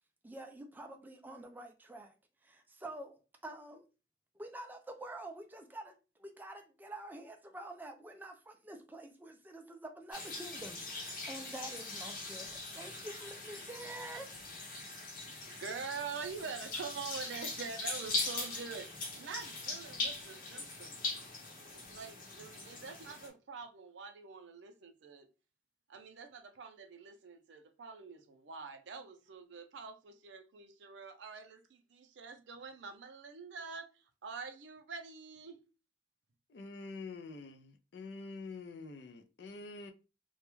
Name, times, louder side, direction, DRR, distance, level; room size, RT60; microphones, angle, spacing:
voice 1, 0.2-2.1 2.4-3.8 4.4-14.3, right 1 dB, 10° right, 0.3 m, -47 dB
sound 1, 10.1-23.3, left 2 dB, 50° left, 0.8 m, -41 dB
voice 2, 15.6-18.9 19.2-21.0 21.7-25.3 25.9-33.9 34.2-35.6, right 5 dB, 80° right, 0.5 m, -45 dB
voice 3, 36.5-39.9, left 3 dB, 65° left, 0.4 m, -46 dB
2.3 x 2.1 x 3.0 m
head